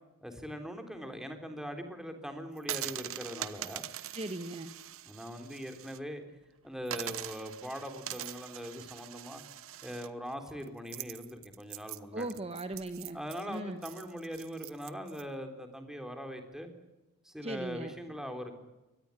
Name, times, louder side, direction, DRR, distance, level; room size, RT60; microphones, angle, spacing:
voice 1, 0.2-3.8 5.1-6.2 6.6-9.4 9.8-12.3 13.1-16.7 17.3-18.6, equal, ahead, 5 dB, 3.7 m, -41 dB
sound 1, 2.6-6.0 6.3-6.4 6.9-15.2, right 12 dB, 65° right, 1.1 m, -43 dB
voice 2, 4.1-4.7 12.1-13.2 13.5-13.8 17.4-17.9, right 1 dB, 30° right, 9 dB, 1.2 m, -38 dB
24.0 x 19.0 x 9.8 m, 1.0 s
head